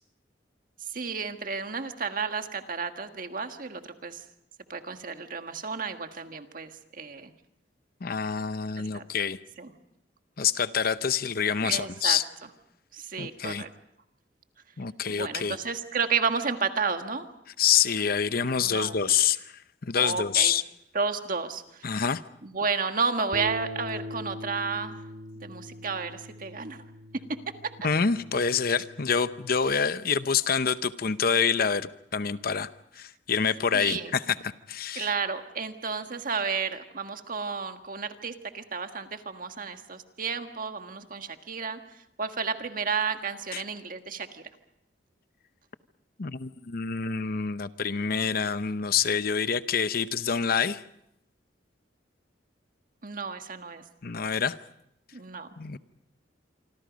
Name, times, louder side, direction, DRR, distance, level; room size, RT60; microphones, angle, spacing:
voice 1, 0.9-4.2 4.7-7.3 8.8-9.0 9.6-9.7 11.6-12.2 12.9-13.7 15.1-17.3 18.6-19.1 20.0-20.5 20.9-22.0 22.4-25.0 25.4-26.8 33.7-34.1 35.0-41.8 42.2-44.4 53.0-53.8 55.1-55.5, right 5 dB, 50° right, 7 dB, 1.6 m, -32 dB
voice 2, 8.0-9.4 10.4-12.2 13.2-13.6 14.8-15.6 17.6-19.4 19.8-20.6 21.8-22.2 27.8-32.7 33.0-35.1 43.5-43.6 46.2-50.8 54.0-54.6 55.6-55.8, left 6 dB, 55° left, 13 dB, 0.8 m, -26 dB
Bass guitar, 23.3-29.6, equal, 70° right, 3.5 m, -42 dB
27.0 x 25.5 x 5.2 m, 0.79 s
head